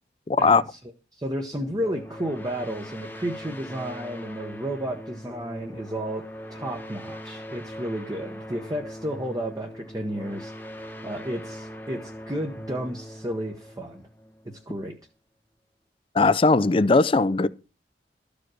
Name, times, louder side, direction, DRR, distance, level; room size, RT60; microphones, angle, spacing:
voice 1, 0.3-0.6 16.1-17.5, left 3 dB, 30° left, 0.4 m, -19 dB
voice 2, 1.1-10.5 11.0-14.0 14.4-14.9, equal, 20° right, 0.9 m, -32 dB
sound 1, 1.5-14.9, equal, 10° left, 1.1 m, -41 dB
13.0 x 5.1 x 6.2 m
head